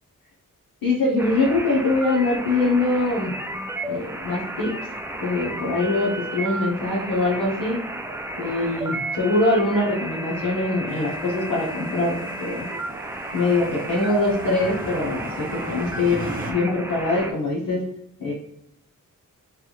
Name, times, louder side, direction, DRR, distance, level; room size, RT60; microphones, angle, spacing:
voice 1, 0.8-3.3 3.9-4.7 5.2-7.8 8.4-12.7 13.3-17.8 18.2-18.3, left 2 dB, 85° left, -5 dB, 1.0 m, -23 dB
sound 1, 1.2-17.3, right 1 dB, 10° right, 0.3 m, -33 dB
sound 2, 10.9-16.5, right 2 dB, 25° right, 0.7 m, -38 dB
3.3 x 2.4 x 3.0 m, 0.75 s
wide cardioid pair, 85°, 32 cm